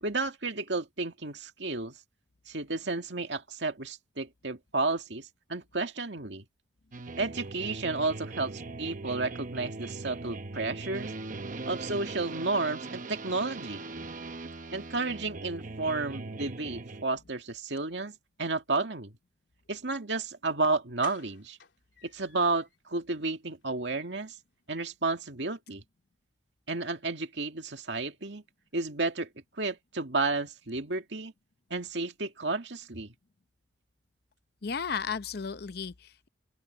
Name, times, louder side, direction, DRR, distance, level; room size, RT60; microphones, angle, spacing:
voice 1, 0.0-2.0 2.5-6.4 7.2-11.1 11.7-13.8 14.7-19.1 19.7-21.6 22.0-24.3 24.7-25.8 26.7-28.4 28.7-29.3 29.6-31.3 31.7-33.1, right 3 dB, 75° right, 2.2 m, -32 dB
sound 1, 6.9-17.0, right 3 dB, 45° right, 0.9 m, -40 dB
sound 2, 20.3-20.4 21.0-22.8 23.1-23.2 23.6-23.8 24.0-24.1, left 6 dB, 75° left, 3.3 m, -51 dB
voice 2, 34.6-36.3, left 6 dB, 60° left, 0.7 m, -34 dB
open air
head